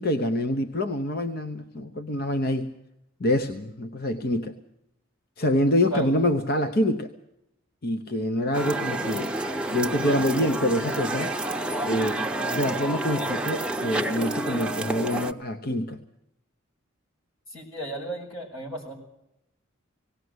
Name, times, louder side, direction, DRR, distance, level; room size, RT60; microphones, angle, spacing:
voice 1, 0.0-2.7 3.2-4.6 5.4-7.1 7.8-9.3 9.7-11.3 11.8-16.0, left 1 dB, 50° left, 8 dB, 0.9 m, -26 dB
sound 1, 8.5-15.3, right 1 dB, 5° right, 0.8 m, -29 dB
voice 2, 17.5-18.9, right 2 dB, 85° left, 0 dB, 6.5 m, -34 dB
19.0 x 17.5 x 8.0 m, 0.84 s
head